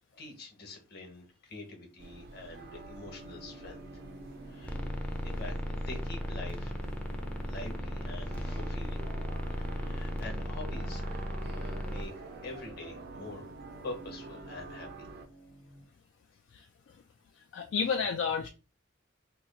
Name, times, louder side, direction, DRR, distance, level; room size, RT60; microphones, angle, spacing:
voice 1, 0.1-4.0 4.4-4.8 5.0-6.8 7.5-9.0 9.6-11.2 11.5-12.1 12.4-13.5 13.8-15.1, left 2 dB, 55° left, 1.1 m, -45 dB
sound 1, 2.0-15.3, right 3 dB, 55° right, 0.5 m, -48 dB
sound 2, 2.7-15.8, right 1 dB, 85° right, 1.1 m, -52 dB
sound 3, 4.6-12.0, equal, 5° left, 0.5 m, -36 dB
voice 2, 17.5-18.5, left 6 dB, 70° left, 0.3 m, -30 dB
2.9 x 2.4 x 4.0 m
head